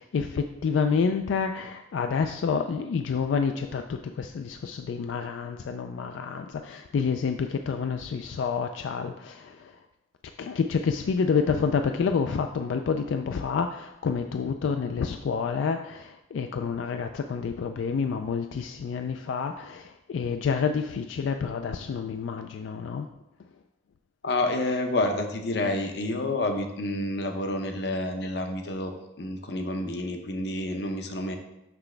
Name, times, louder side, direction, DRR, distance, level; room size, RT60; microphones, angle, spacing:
voice 1, 0.0-9.8 10.4-23.1, left 5 dB, 90° left, 6 dB, 0.3 m, -28 dB
voice 2, 24.2-31.4, left 2 dB, 65° left, 5 dB, 0.7 m, -29 dB
6.0 x 5.8 x 3.3 m, 0.89 s
head